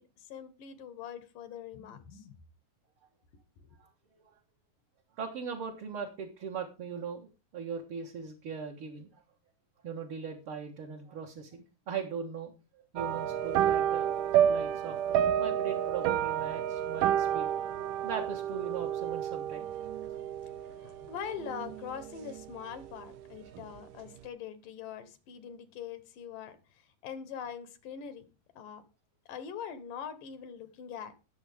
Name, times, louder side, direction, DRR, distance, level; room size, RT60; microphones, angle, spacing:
voice 1, 0.0-2.4 20.6-26.6 27.0-28.3 28.6-28.8 29.3-31.1, left 8 dB, 75° left, 12 dB, 2.8 m, -43 dB
voice 2, 3.8-4.4 5.2-9.1 9.8-17.5 18.0-19.7, right 6 dB, 50° right, -1 dB, 2.0 m, -40 dB
sound 1, 13.0-22.5 22.8-23.2 23.6-23.7, right 10 dB, 80° right, 2.2 m, -30 dB
20.0 x 7.2 x 3.6 m, 0.30 s
omnidirectional pair, 3.9 m